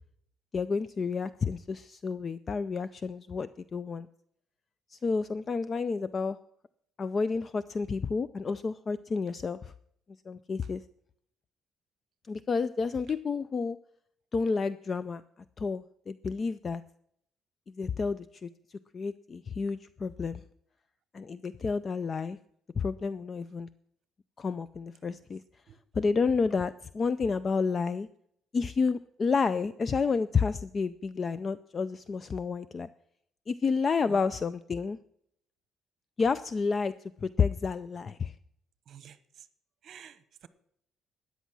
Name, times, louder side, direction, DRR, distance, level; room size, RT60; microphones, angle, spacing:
voice 1, 0.5-4.1 4.9-6.4 7.0-9.7 10.3-10.8 12.3-13.8 14.3-15.2 15.6-16.8 17.8-18.5 18.9-20.4 21.1-22.4 22.8-23.7 24.4-25.4 25.9-28.1 28.5-32.9 33.5-35.0 36.2-36.9 37.2-38.3, left 5 dB, 30° left, 15 dB, 0.4 m, -30 dB
voice 2, 38.9-39.5 39.8-40.5, right 8 dB, 55° right, 14 dB, 1.0 m, -50 dB
13.5 x 9.4 x 6.2 m, 0.70 s
cardioid pair, 140°, 0 cm